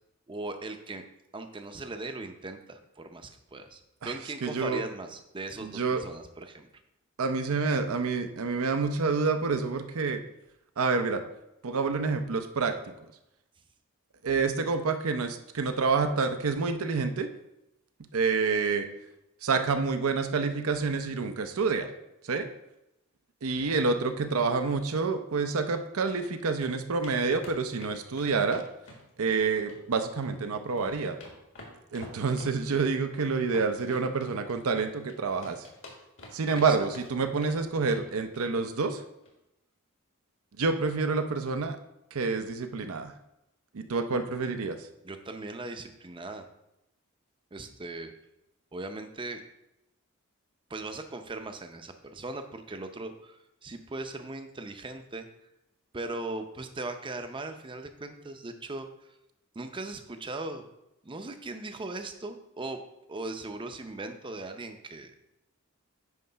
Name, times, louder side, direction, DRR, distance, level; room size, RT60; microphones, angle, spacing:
voice 1, 0.3-1.0 1.3-6.7 36.7-36.9 45.0-46.5 47.5-48.1 48.7-49.4 50.7-55.3 55.9-58.9 59.5-60.6 61.0-62.8 63.1-65.1, right 2 dB, 25° right, 7 dB, 0.6 m, -39 dB
voice 2, 4.4-4.8 5.6-6.0 7.2-10.2 10.8-11.2 11.6-12.8 14.2-17.3 18.1-18.9 19.4-21.9 22.2-22.5 23.4-28.6 29.2-31.2 31.9-35.7 36.3-39.0 40.6-41.8 42.1-43.1 43.7-44.8, right 4 dB, 75° right, 7 dB, 0.6 m, -28 dB
sound 1, 25.8-26.3 26.6-26.7 27.0-27.2 27.4-29.4 29.7-30.4 30.6-35.1 35.4-36.7 36.9-37.5 37.8-38.1 38.3-38.5 38.8-38.9 39.2-39.3, left 2 dB, 65° left, 1.7 m, -49 dB
9.3 x 3.2 x 5.6 m, 0.88 s
head